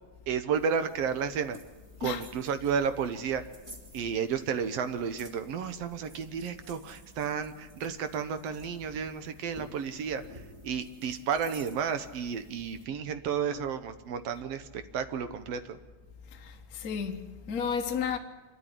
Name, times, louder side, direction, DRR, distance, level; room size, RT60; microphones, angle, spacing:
voice 1, 0.3-1.6 2.0-3.4 3.9-15.8, right 7 dB, 70° right, 1.6 m, -32 dB
sound 1, 0.5-12.8, equal, 20° right, 1.0 m, -53 dB
voice 2, 16.3-18.2, left 7 dB, 55° left, 1.0 m, -33 dB
26.0 x 12.5 x 10.0 m
omnidirectional pair, 3.7 m